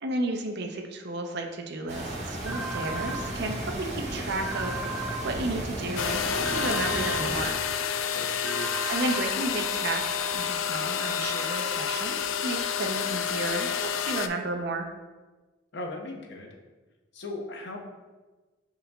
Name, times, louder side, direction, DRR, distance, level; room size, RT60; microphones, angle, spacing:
voice 1, 0.0-7.7 8.6-14.9, right 2 dB, 60° right, 3 dB, 0.5 m, -33 dB
sound 1, 1.9-7.5, right 1 dB, 35° right, 1.0 m, -34 dB
sound 2, 2.5-3.2 4.5-5.2 6.5-7.2 8.5-9.2, right 3 dB, ahead, 0.5 m, -35 dB
sound 3, 6.0-14.3, left 8 dB, 90° left, 0.3 m, -29 dB
voice 2, 8.1-8.7 15.7-16.5 17.1-17.8, left 2 dB, 60° left, 2 dB, 0.7 m, -37 dB
5.7 x 4.0 x 2.3 m, 1.3 s
head